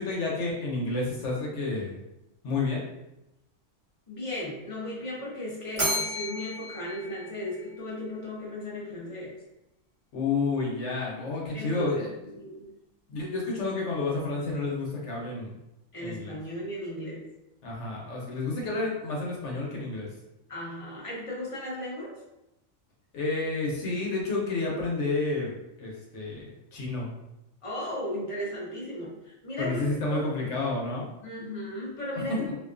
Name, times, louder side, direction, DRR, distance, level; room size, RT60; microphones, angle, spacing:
voice 1, 0.0-2.0 2.4-2.8 10.1-12.1 13.1-15.5 16.0-16.3 17.6-20.1 23.1-27.1 29.6-31.1 32.2-32.5, left 3 dB, 70° left, -3 dB, 1.1 m, -30 dB
voice 2, 4.1-9.3 11.5-12.7 15.9-17.2 20.5-22.1 27.6-30.3 31.2-32.4, left 1 dB, 35° left, -6 dB, 0.5 m, -36 dB
Bell, 5.8-8.1, equal, 30° right, 0.7 m, -33 dB
2.6 x 2.2 x 2.4 m, 0.90 s
omnidirectional pair, 1.3 m